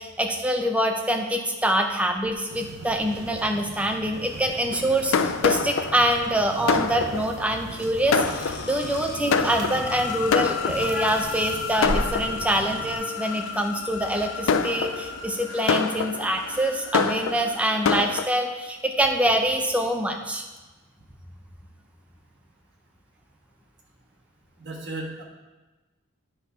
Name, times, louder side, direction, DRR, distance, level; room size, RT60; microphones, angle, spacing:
voice 1, 0.0-20.5, right 1 dB, 5° right, 3 dB, 0.5 m, -25 dB
sound 1, 2.5-13.0, right 2 dB, 75° right, 0.7 m, -38 dB
Fireworks, 4.7-11.2 11.8-12.7 13.3-13.6 14.1-18.3, left 5 dB, 60° left, 0.3 m, -27 dB
sound 2, 7.8-18.5, left 6 dB, 80° left, 0.8 m, -36 dB
voice 2, 24.6-25.2, right 2 dB, 50° right, -2 dB, 1.4 m, -34 dB
8.6 x 3.6 x 5.7 m, 1.2 s
head